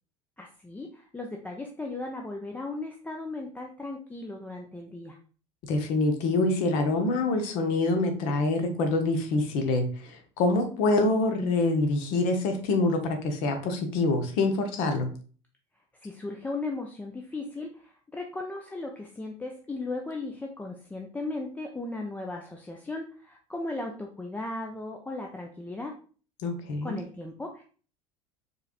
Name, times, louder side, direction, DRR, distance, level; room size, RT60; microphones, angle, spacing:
voice 1, 0.4-5.2 16.0-25.9 26.8-27.6, left 2 dB, 10° left, 2 dB, 0.5 m, -36 dB
voice 2, 5.6-15.1 26.4-27.0, left 2 dB, 50° left, 6 dB, 0.9 m, -26 dB
4.8 x 3.1 x 2.4 m, 0.40 s
figure-of-eight pair, 70°, 17 cm